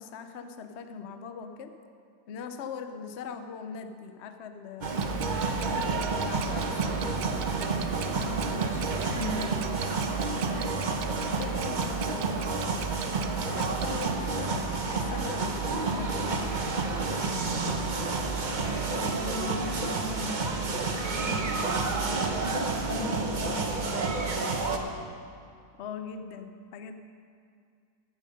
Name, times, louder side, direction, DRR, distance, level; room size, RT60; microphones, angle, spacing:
voice 1, 0.0-1.8 2.3-7.0 10.2-13.0 13.5-17.7 25.8-27.0, left 6 dB, 75° left, 7 dB, 0.6 m, -41 dB
sound 1, 4.8-24.8, right 3 dB, 45° right, 0.6 m, -30 dB
Clock, 4.9-14.1, right 10 dB, 85° right, 0.7 m, -40 dB
voice 2, 8.1-9.7 18.4-22.5 22.9-24.8, left 1 dB, 55° left, -7 dB, 3.8 m, -38 dB
14.0 x 9.2 x 5.3 m, 2.3 s
omnidirectional pair, 2.0 m